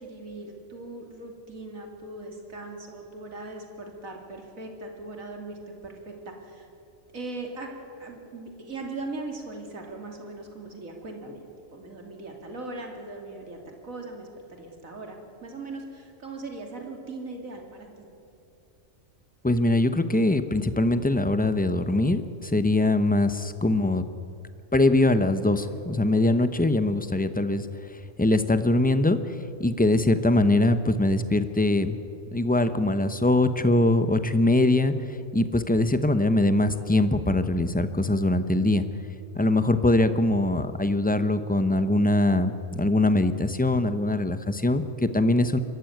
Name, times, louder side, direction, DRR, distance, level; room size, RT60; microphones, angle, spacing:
voice 1, 0.0-6.7 7.1-7.7 8.0-11.4 11.7-18.1, right 2 dB, 85° right, 2 dB, 3.0 m, -39 dB
voice 2, 19.4-24.0 24.7-27.7 28.2-29.2 29.6-32.0 32.3-34.9 35.3-38.8 39.3-45.6, left 2 dB, 10° left, 11 dB, 0.7 m, -22 dB
23.0 x 14.0 x 9.3 m, 2.6 s
omnidirectional pair, 1.4 m